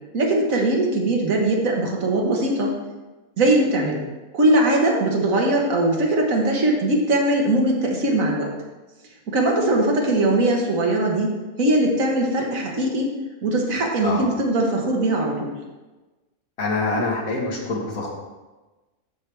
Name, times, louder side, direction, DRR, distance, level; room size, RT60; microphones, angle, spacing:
voice 1, 0.1-2.7 3.4-4.0 4.3-8.5 9.3-13.1 13.4-15.5, right 1 dB, 65° right, 0 dB, 1.6 m, -20 dB
voice 2, 16.6-18.1, left 2 dB, 70° left, -1 dB, 1.9 m, -25 dB
12.5 x 4.6 x 3.4 m, 1.2 s
omnidirectional pair, 1.6 m